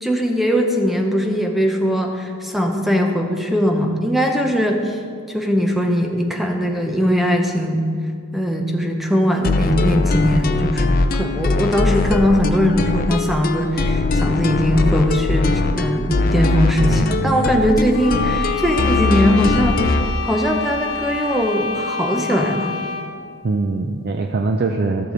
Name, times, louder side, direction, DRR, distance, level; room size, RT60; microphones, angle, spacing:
voice 1, 0.0-5.0 5.3-7.9 8.3-19.9 20.2-22.8, equal, ahead, 2 dB, 0.7 m, -20 dB
sound 1, 9.4-20.1, left 2 dB, 40° left, 0.5 m, -20 dB
voice 2, 16.9-17.5 23.4-25.1, right 3 dB, 45° right, 5 dB, 0.4 m, -22 dB
sound 2, 17.9-23.2, left 5 dB, 60° left, 1.2 m, -27 dB
15.5 x 6.8 x 3.9 m, 2.2 s
head